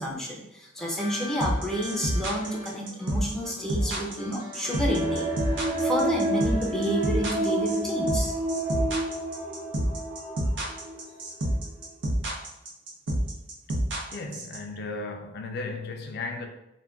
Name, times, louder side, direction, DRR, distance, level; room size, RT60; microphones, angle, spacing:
voice 1, 0.0-5.3 5.8-8.3, equal, 5° left, 0.5 m, -30 dB
sound 1, 0.8-9.6, left 1 dB, 20° right, 1.0 m, -45 dB
sound 2, 1.4-14.6, right 1 dB, 85° right, 0.7 m, -28 dB
sound 3, 4.9-11.1 11.4-11.5, right 1 dB, 50° right, 0.8 m, -29 dB
voice 2, 14.1-16.5, left 3 dB, 60° left, 0.4 m, -35 dB
2.3 x 2.2 x 3.4 m
head